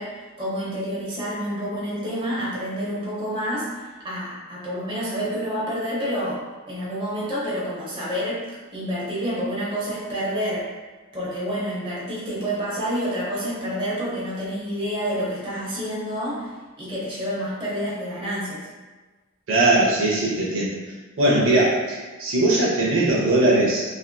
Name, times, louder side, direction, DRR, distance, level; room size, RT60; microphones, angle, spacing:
voice 1, 0.0-8.4 8.7-10.6 11.1-16.5 16.8-18.7, equal, 25° right, -7 dB, 0.8 m, -28 dB
voice 2, 19.5-20.7 21.2-23.8, right 2 dB, 65° right, -5 dB, 0.6 m, -20 dB
3.3 x 2.6 x 2.2 m, 1.3 s
head